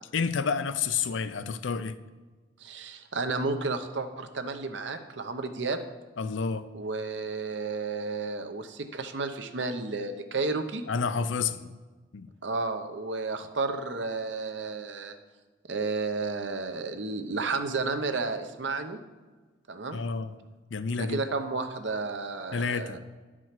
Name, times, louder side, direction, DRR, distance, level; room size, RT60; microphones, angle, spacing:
voice 1, 0.1-2.0 6.2-6.7 10.9-11.7 12.1-12.3 19.9-20.4 20.7-21.2 22.5-23.0, left 5 dB, 85° left, 0.5 m, -29 dB
voice 2, 2.6-5.8 6.7-10.8 12.4-15.2 15.7-19.0 19.7-20.0 21.0-23.0, right 3 dB, 80° right, 0.8 m, -32 dB
11.0 x 4.9 x 5.8 m
head